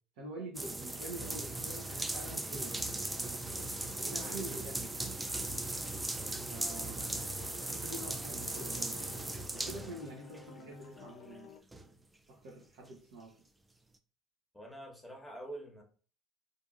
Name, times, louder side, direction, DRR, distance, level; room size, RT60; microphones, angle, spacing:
voice 1, 0.2-3.7 3.9-5.2 6.5-7.2 7.6-9.2 9.5-11.5 12.3-13.3, right 2 dB, 70° right, -3 dB, 0.7 m, -46 dB
sound 1, 0.5-10.4 11.0-11.1 11.7-11.9, right 2 dB, 15° right, 0.4 m, -38 dB
voice 2, 5.7-6.6 9.7-10.0 14.5-15.8, right 1 dB, 5° left, 0 dB, 0.9 m, -48 dB
sound 2, 6.5-11.6, left 7 dB, 55° left, 0.5 m, -54 dB
2.7 x 2.6 x 2.4 m, 0.40 s
hypercardioid pair, 65°, 0 cm